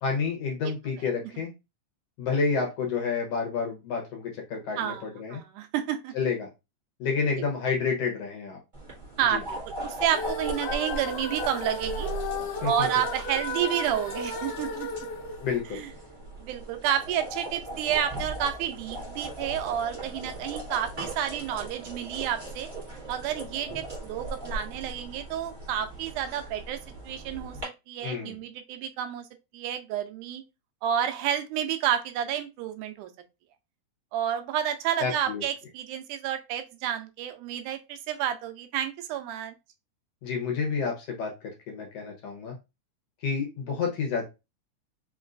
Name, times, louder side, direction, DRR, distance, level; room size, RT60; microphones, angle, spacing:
voice 1, 0.0-1.5 2.2-5.4 6.1-6.5 7.0-8.6 9.3-9.4 12.6-12.9 15.4-15.8 28.0-28.4 35.0-35.4 40.2-42.5 43.2-44.2, left 5 dB, 65° left, 1.7 m, -29 dB
voice 2, 5.3-6.1 9.2-9.6 9.8-12.1 12.6-14.9 15.7-15.9 16.4-22.7 23.1-26.8 27.1-29.2 29.5-30.4 30.8-33.1 34.1-39.6, right 10 dB, 90° right, 2.1 m, -30 dB
sound 1, 8.7-27.6, right 1 dB, 20° right, 1.3 m, -39 dB
sound 2, 10.1-16.2, left 2 dB, 90° left, 2.3 m, -35 dB
5.1 x 3.1 x 2.5 m
omnidirectional pair, 3.5 m